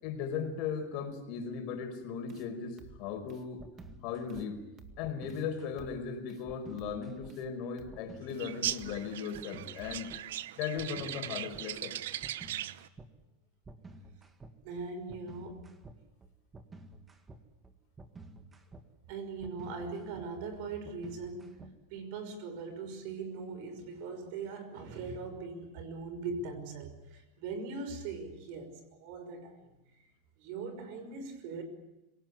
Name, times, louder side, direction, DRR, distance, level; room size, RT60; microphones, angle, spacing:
voice 1, 0.0-3.6 4.0-4.6 5.0-10.1 10.6-11.9, left 6 dB, 50° left, 5 dB, 5.1 m, -37 dB
sound 1, 2.3-2.5 2.8-3.0 3.3-3.5 3.8-4.0 4.3-4.5 4.8-5.0 5.3-5.5 5.8-6.0 6.3-6.4 6.8-7.0 7.3-7.5 7.8-8.0 8.3-8.5 8.8-9.0 9.3-9.5 9.8-10.0, right 5 dB, 30° right, 2.0 m, -53 dB
sound 2, 3.6-4.4 5.0-5.9 6.5-7.3 7.9-8.8 9.3-10.2 10.8-11.7 12.2-13.1 13.6-22.0, right 2 dB, 15° right, 2.0 m, -52 dB
sound 3, 8.4-12.9, right 13 dB, 80° right, 0.8 m, -39 dB
voice 2, 14.6-15.7 19.1-29.6 29.9-30.0 30.4-31.6, right 4 dB, 55° right, 10 dB, 5.7 m, -40 dB
26.0 x 18.0 x 9.7 m, 0.96 s
supercardioid pair, 150°, 0 cm